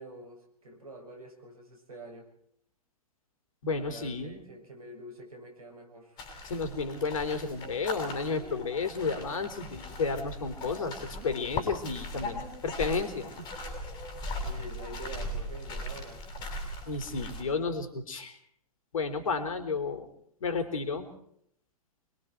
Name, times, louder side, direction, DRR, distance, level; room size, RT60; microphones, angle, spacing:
voice 1, 0.0-2.3 3.7-6.2 14.4-16.2, right 1 dB, 70° right, 4 dB, 7.3 m, -46 dB
voice 2, 3.6-4.4 6.4-13.7 16.9-18.4 18.9-20.1 20.4-21.1, left 4 dB, 60° left, 6 dB, 3.8 m, -32 dB
sound 1, 6.2-17.4, left 1 dB, 20° left, 6.7 m, -39 dB
26.0 x 22.5 x 4.6 m, 0.68 s
figure-of-eight pair, 110°, 19 cm